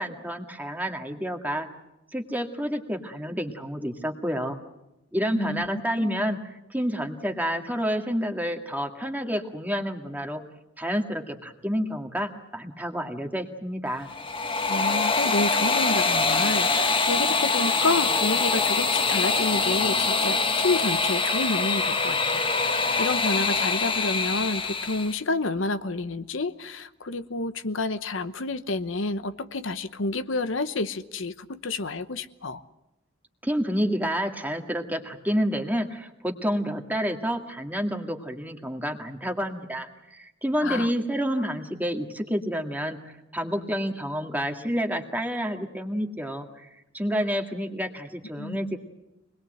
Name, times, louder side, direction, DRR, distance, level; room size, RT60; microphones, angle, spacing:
voice 1, 0.0-1.7 2.1-4.6 5.1-6.4 6.7-10.4 10.8-14.1 33.4-46.7 46.9-48.8, equal, 10° right, 4 dB, 2.0 m, -29 dB
voice 2, 5.3-5.7 6.0-6.2 14.6-32.6 40.6-40.9 48.4-48.8, left 3 dB, 80° left, 11 dB, 1.0 m, -29 dB
sound 1, 14.0-25.2, left 4 dB, 25° left, 1.4 m, -24 dB
25.5 x 20.5 x 7.9 m, 0.90 s
head